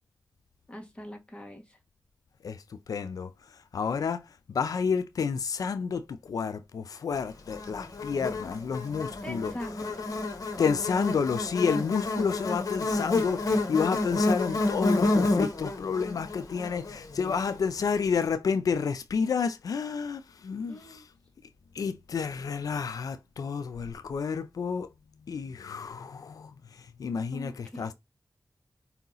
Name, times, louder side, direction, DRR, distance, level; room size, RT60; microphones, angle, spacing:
voice 1, 0.7-1.8 9.2-10.2 20.7-21.1 27.3-27.9, equal, 20° left, 1.4 m, -42 dB
voice 2, 2.4-9.5 10.6-21.0 21.7-24.9 25.3-27.9, left 6 dB, 90° left, 0.4 m, -30 dB
Buzz, 7.5-17.9, left 2 dB, 75° left, 1.0 m, -30 dB
4.7 x 2.8 x 3.9 m
wide cardioid pair, 105°, 6 cm